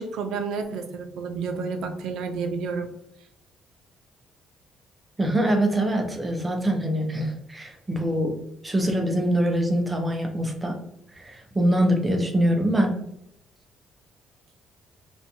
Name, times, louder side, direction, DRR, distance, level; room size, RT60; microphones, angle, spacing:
voice 1, 0.0-2.9, right 4 dB, 80° right, 6 dB, 0.4 m, -30 dB
voice 2, 5.2-8.3 8.6-10.7 11.2-12.9, equal, 15° right, 2 dB, 0.5 m, -24 dB
2.5 x 2.2 x 2.7 m, 0.75 s
cardioid pair, 140°, 0 cm